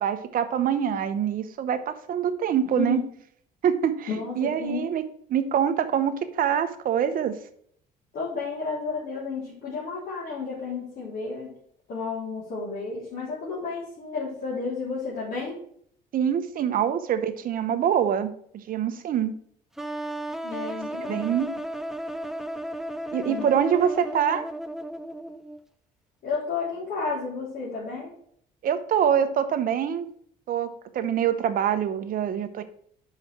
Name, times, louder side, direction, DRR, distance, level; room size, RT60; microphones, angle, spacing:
voice 1, 0.0-3.0 3.6-4.1 4.4-5.0 5.3-7.3 16.1-18.3 18.7-19.4 21.0-21.6 23.1-24.5 28.6-30.1 30.5-32.6, right 9 dB, 55° right, 9 dB, 0.9 m, -25 dB
voice 2, 4.1-4.9 8.1-11.5 11.9-15.6 20.4-21.3 23.3-23.5 26.2-28.1, left 4 dB, 65° left, -9 dB, 3.3 m, -32 dB
sound 1, 19.8-25.6, right 1 dB, ahead, 0.5 m, -34 dB
5.9 x 4.9 x 6.0 m, 0.63 s
cardioid pair, 110°, 17 cm